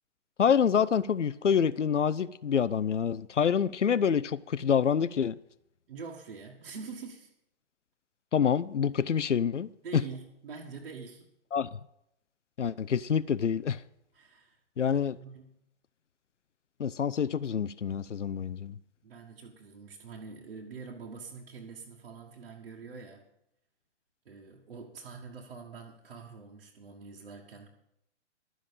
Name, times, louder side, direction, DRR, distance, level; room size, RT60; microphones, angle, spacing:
voice 1, 0.4-5.4 8.3-10.0 11.5-11.8 12.6-13.8 14.8-15.2 16.8-18.8, left 7 dB, 85° left, 0.6 m, -27 dB
voice 2, 5.9-7.3 9.8-11.3 14.1-15.6 19.0-23.3 24.3-27.7, right 5 dB, 55° right, 1.7 m, -45 dB
12.5 x 7.1 x 8.8 m
figure-of-eight pair, 125°, 35 cm